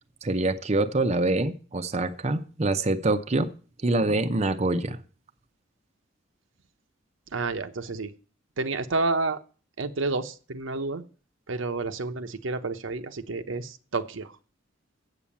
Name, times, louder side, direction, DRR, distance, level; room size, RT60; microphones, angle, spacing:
voice 1, 0.2-3.5 3.8-5.0, right 2 dB, 35° right, 7 dB, 0.6 m, -25 dB
voice 2, 7.3-8.1 8.6-9.4 9.8-11.0 11.5-14.3, right 3 dB, 85° right, 8 dB, 0.9 m, -30 dB
8.2 x 7.2 x 8.4 m, 0.39 s
head